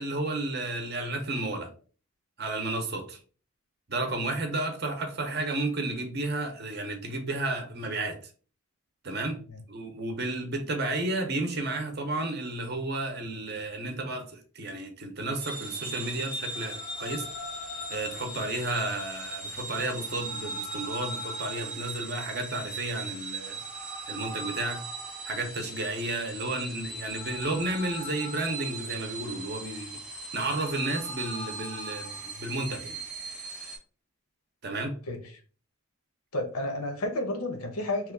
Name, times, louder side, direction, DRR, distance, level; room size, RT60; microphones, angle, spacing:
voice 1, 0.0-1.7 2.4-3.2 3.9-8.2 9.0-17.3 17.7-23.6 24.1-24.8 25.2-30.0 30.3-33.0 34.6-35.0, right 2 dB, 45° right, 0.7 m, -32 dB
sound 1, 15.4-33.8, right 2 dB, 5° right, 0.7 m, -38 dB
voice 2, 36.3-38.1, left 1 dB, 85° left, 0.8 m, -31 dB
3.0 x 2.3 x 3.5 m
head